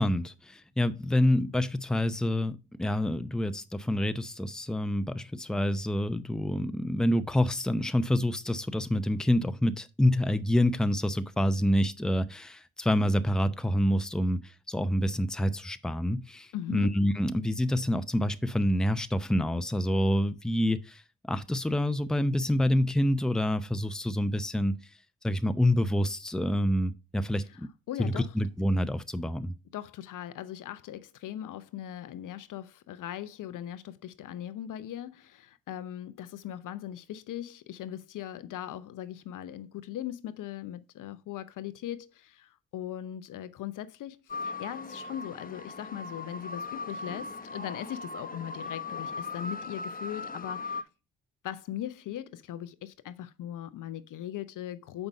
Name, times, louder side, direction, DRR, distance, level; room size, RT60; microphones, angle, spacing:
voice 1, 0.0-21.0 21.3-24.7 25.2-27.7 28.0-29.5, left 1 dB, ahead, 0.7 m, -27 dB
voice 2, 16.5-16.9 27.5-27.6 27.9-28.3 29.7-50.9 51.4-55.1, left 11 dB, 55° left, 0.7 m, -39 dB
sound 1, 44.3-50.8, left 3 dB, 25° left, 1.0 m, -38 dB
6.9 x 5.3 x 5.3 m
hypercardioid pair, 40°, 37 cm